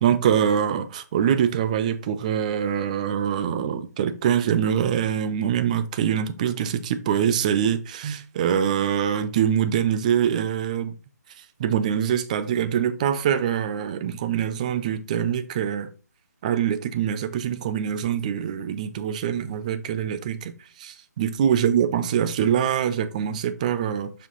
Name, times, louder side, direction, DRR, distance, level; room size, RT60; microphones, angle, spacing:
voice 1, 0.0-10.9 11.6-15.9 16.4-20.5 20.8-24.1, right 9 dB, 25° right, 0.5 m, -24 dB
5.8 x 4.7 x 4.0 m
figure-of-eight pair, 140°, 9 cm